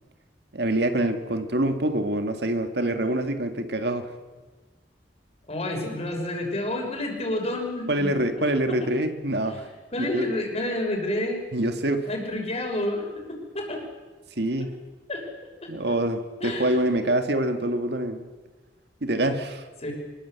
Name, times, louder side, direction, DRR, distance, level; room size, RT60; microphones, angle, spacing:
voice 1, 0.5-4.1 7.9-9.7 10.1-10.3 11.5-12.1 14.4-14.8 15.7-18.3 19.0-19.7, right 1 dB, 70° right, 7 dB, 2.0 m, -25 dB
voice 2, 5.5-8.3 8.8-8.9 9.9-11.4 12.1-13.8 15.1-15.2 15.6-15.7 16.4-16.8 19.1-19.2 19.8-19.9, left 1 dB, 40° left, 2 dB, 6.2 m, -29 dB
24.5 x 21.5 x 8.2 m, 1.3 s
head